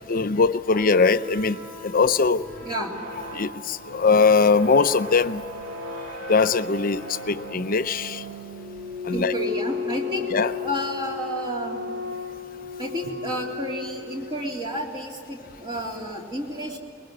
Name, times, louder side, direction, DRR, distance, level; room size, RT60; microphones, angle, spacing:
voice 1, 0.1-2.5 3.3-5.4 6.3-8.2 9.0-9.3 10.3-10.5, left 4 dB, 45° left, 0.7 m, -21 dB
sound 1, 0.6-14.4, left 3 dB, 65° right, 3.1 m, -35 dB
voice 2, 2.6-2.9 9.1-10.3 10.6-11.8 12.8-16.8, equal, 25° right, 3.5 m, -31 dB
23.5 x 21.5 x 9.7 m
head